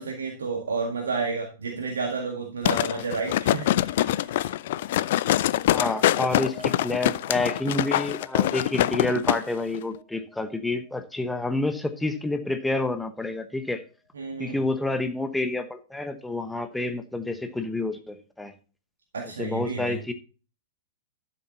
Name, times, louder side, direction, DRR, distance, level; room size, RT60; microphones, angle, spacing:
voice 1, 0.0-4.6 14.1-14.6 19.1-20.0, right 4 dB, 70° right, 1 dB, 1.9 m, -31 dB
sound 1, 2.6-9.4 9.7-9.8, left 13 dB, 55° left, 0.4 m, -24 dB
voice 2, 5.7-13.8 14.4-18.5 19.4-20.1, left 2 dB, 5° left, 8 dB, 1.1 m, -29 dB
sound 2, 5.8-12.5 12.7-13.4, left 6 dB, 35° left, 2.7 m, -46 dB
12.0 x 7.0 x 4.1 m, 0.36 s
figure-of-eight pair, 100°, 0 cm